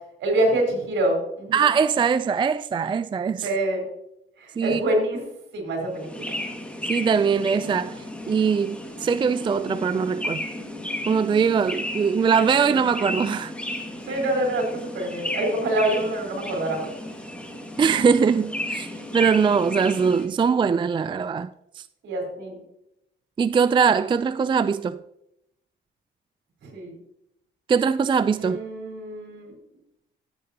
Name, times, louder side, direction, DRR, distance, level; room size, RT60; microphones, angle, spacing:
voice 1, 0.2-1.7 3.4-3.9 4.4-5.2 5.5-6.3 12.6-12.8 14.1-16.9 22.0-22.6 26.6-26.9 28.4-29.5, right 1 dB, 70° right, 4.2 m, -26 dB
voice 2, 1.5-3.5 4.6-4.8 6.9-10.5 11.1-13.5 17.8-18.9 19.1-21.5 21.8-21.9 23.4-25.0 27.7-28.6, right 6 dB, 25° right, 0.4 m, -22 dB
sound 1, 5.9-20.3, left 1 dB, 5° left, 2.0 m, -34 dB
14.0 x 8.6 x 2.9 m
cardioid pair, 90°, 20 cm